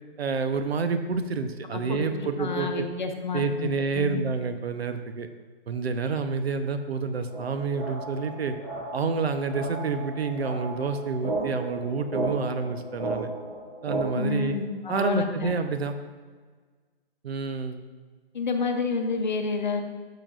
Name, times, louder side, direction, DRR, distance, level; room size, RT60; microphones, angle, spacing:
voice 1, 0.2-2.8 3.3-5.3 5.7-8.6 8.9-13.3 13.8-14.6 14.9-15.9 17.2-17.8, right 4 dB, 75° right, 8 dB, 0.8 m, -28 dB
voice 2, 1.7-4.2 14.1-15.5 18.3-19.8, left 4 dB, 50° left, 5 dB, 0.8 m, -29 dB
sound 1, 7.3-14.3, right 2 dB, 10° right, 1.8 m, -34 dB
12.0 x 6.0 x 2.5 m, 1.5 s
hypercardioid pair, 180°, 31 cm